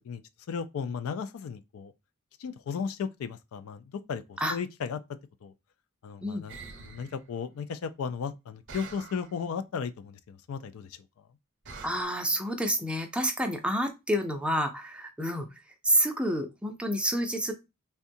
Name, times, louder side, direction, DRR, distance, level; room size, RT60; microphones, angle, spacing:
voice 1, 0.5-1.9 2.4-5.0 5.4-5.5 6.0-11.0, left 6 dB, 70° left, 0.3 m, -35 dB
sound 1, 6.5-7.2 8.7-9.4 11.6-12.0, right 4 dB, 60° right, 0.7 m, -45 dB
voice 2, 11.8-15.5 15.8-17.5, equal, 5° right, 0.5 m, -28 dB
3.5 x 2.2 x 2.5 m
head